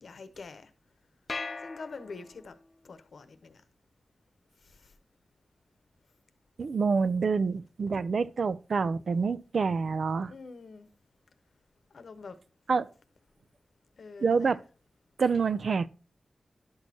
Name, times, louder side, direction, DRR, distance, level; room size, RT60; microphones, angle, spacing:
voice 1, 0.0-0.7 1.6-2.5 2.8-3.6 4.6-4.9 10.3-10.9 11.9-12.4 14.0-14.6, left 4 dB, 70° left, 0.9 m, -45 dB
sound 1, 1.3-2.7, left 3 dB, 40° left, 0.6 m, -39 dB
voice 2, 6.6-10.3 12.7-12.9 14.2-14.6 15.2-15.9, right 5 dB, 65° right, 0.4 m, -27 dB
11.0 x 6.2 x 2.7 m
wide cardioid pair, 130°, 0 cm